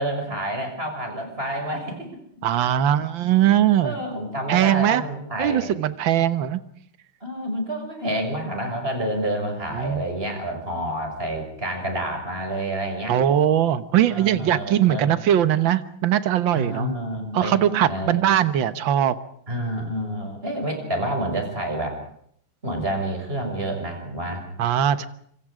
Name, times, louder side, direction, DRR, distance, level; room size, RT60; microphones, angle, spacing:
voice 1, 0.0-2.1 3.8-5.7 7.2-13.2 14.1-15.1 16.5-17.5 17.9-18.2 19.5-22.0 22.6-24.5, right 1 dB, 25° right, 4 dB, 6.2 m, -28 dB
voice 2, 2.4-4.0 4.5-5.0 5.4-6.6 9.7-10.0 13.1-16.9 17.3-19.2 24.6-25.1, right 10 dB, 65° right, 12 dB, 1.9 m, -20 dB
26.5 x 26.0 x 5.0 m, 0.66 s
omnidirectional pair, 2.4 m